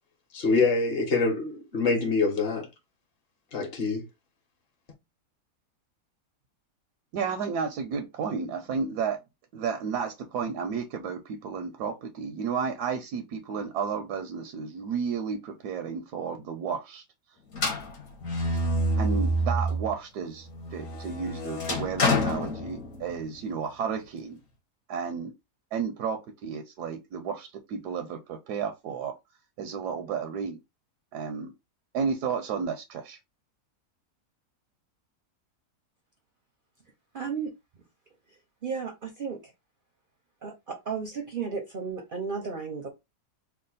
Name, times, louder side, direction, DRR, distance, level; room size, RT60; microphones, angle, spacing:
voice 1, 0.3-2.7 3.5-4.0, left 4 dB, 40° left, 1.2 m, -25 dB
voice 2, 7.1-9.2 9.5-17.0 18.9-24.4 24.9-25.3 25.7-29.1 29.6-30.6 31.1-31.5 31.9-33.2, right 6 dB, 80° right, 1.1 m, -32 dB
sound 1, 17.5-20.0 20.4-23.2, equal, 60° left, 1.3 m, -28 dB
voice 3, 37.1-37.5 38.6-39.5 40.4-42.9, right 5 dB, 50° right, 0.6 m, -34 dB
3.1 x 2.3 x 3.9 m
omnidirectional pair, 1.7 m